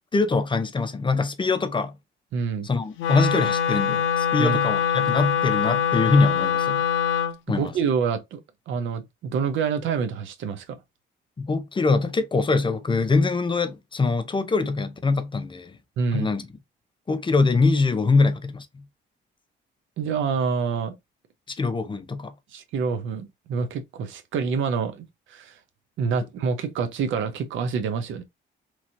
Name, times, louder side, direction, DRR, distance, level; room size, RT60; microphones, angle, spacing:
voice 1, 0.0-1.9 2.6-6.8 7.5-7.7 11.4-15.8 16.1-16.4 17.1-18.8 21.5-22.3, left 3 dB, 25° left, 0.5 m, -23 dB
voice 2, 2.3-2.7 4.4-4.6 7.5-8.4 8.7-10.8 16.0-16.3 20.0-20.9 22.5-25.0 25.3-25.5 26.0-28.2, right 5 dB, 75° right, 0.7 m, -27 dB
Wind instrument woodwind instrument, 3.0-7.4, left 8 dB, 80° left, 0.6 m, -23 dB
3.0 x 2.7 x 2.6 m
cardioid pair, 90°, 20 cm